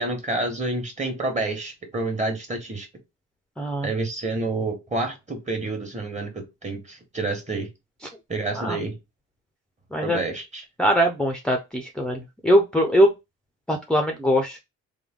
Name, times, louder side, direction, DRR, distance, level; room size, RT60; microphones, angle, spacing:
voice 1, 0.0-2.9 3.8-7.7 8.3-9.0 10.0-10.6, right 2 dB, 25° right, 1.4 m, -28 dB
voice 2, 3.6-3.9 8.6-8.8 9.9-10.2 10.8-13.1 13.7-14.6, equal, 5° left, 0.6 m, -21 dB
3.4 x 2.2 x 3.6 m
cardioid pair, 90°, 30 cm